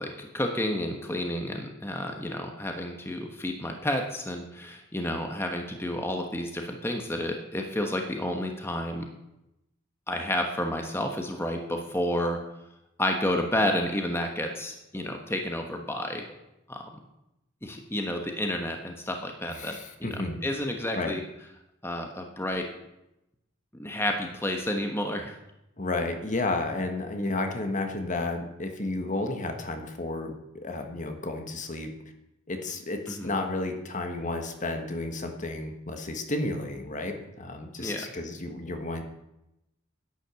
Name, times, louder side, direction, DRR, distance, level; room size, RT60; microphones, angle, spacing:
voice 1, 0.0-9.0 10.1-12.4 13.0-16.2 16.7-16.8 17.6-21.2 21.8-22.6 23.8-25.3 33.1-33.3 37.8-38.1, left 1 dB, 10° left, 3 dB, 1.2 m, -30 dB
voice 2, 19.5-20.4 20.9-21.1 25.8-31.9 32.5-39.0, left 2 dB, 40° left, 5 dB, 1.5 m, -32 dB
11.0 x 10.0 x 6.9 m, 0.88 s
head